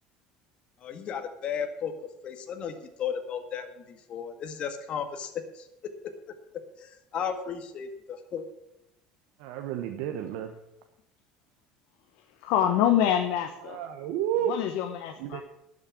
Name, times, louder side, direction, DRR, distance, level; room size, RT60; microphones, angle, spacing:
voice 1, 0.8-1.9 2.2-5.7 6.8-8.5, left 7 dB, 45° left, 7 dB, 1.8 m, -35 dB
voice 2, 9.4-10.6 13.7-14.5 15.2-15.4, right 11 dB, 75° right, 5 dB, 1.0 m, -31 dB
voice 3, 12.4-13.8 14.5-15.4, left 10 dB, 75° left, 6 dB, 1.1 m, -25 dB
12.0 x 6.6 x 8.6 m, 0.85 s
supercardioid pair, 110°, 2 cm